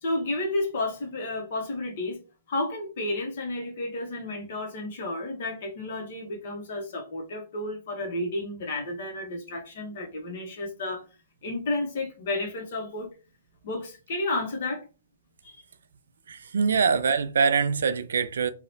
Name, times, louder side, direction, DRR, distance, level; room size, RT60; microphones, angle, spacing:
voice 1, 0.0-2.2 2.5-11.0 11.4-13.1 13.6-14.8 15.4-15.6, left 2 dB, 55° left, 0.7 m, -31 dB
voice 2, 16.3-18.5, right 5 dB, 75° right, 0.3 m, -24 dB
2.8 x 2.0 x 2.6 m
hypercardioid pair, 135°, 0 cm